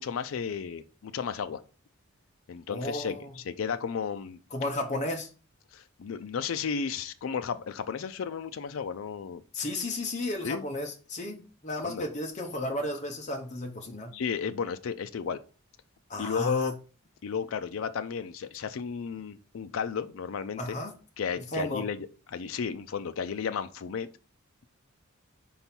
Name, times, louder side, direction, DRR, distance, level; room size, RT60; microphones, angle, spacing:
voice 1, 0.0-1.6 2.5-4.4 5.7-9.4 10.4-10.6 11.8-12.1 14.1-15.4 16.2-16.7 17.2-20.8 21.2-24.1, left 6 dB, 70° left, 0.4 m, -33 dB
voice 2, 2.7-3.3 4.5-5.3 9.5-14.1 16.1-16.7 20.6-20.9 21.5-21.9, left 1 dB, 35° left, 0.9 m, -33 dB
5.5 x 4.5 x 4.3 m
head